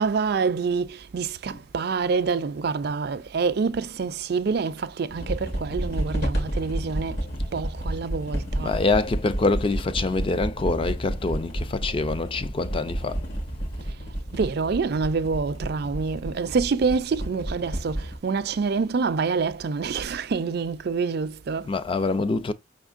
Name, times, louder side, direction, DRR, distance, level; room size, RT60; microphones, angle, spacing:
voice 1, 0.0-8.8 13.8-14.0 14.3-21.7, right 5 dB, 60° right, 0.4 m, -27 dB
sound 1, 5.1-18.2, right 1 dB, 65° left, 1.8 m, -31 dB
voice 2, 8.6-13.2 21.7-22.5, left 3 dB, 30° left, 0.4 m, -25 dB
5.6 x 3.6 x 2.5 m
head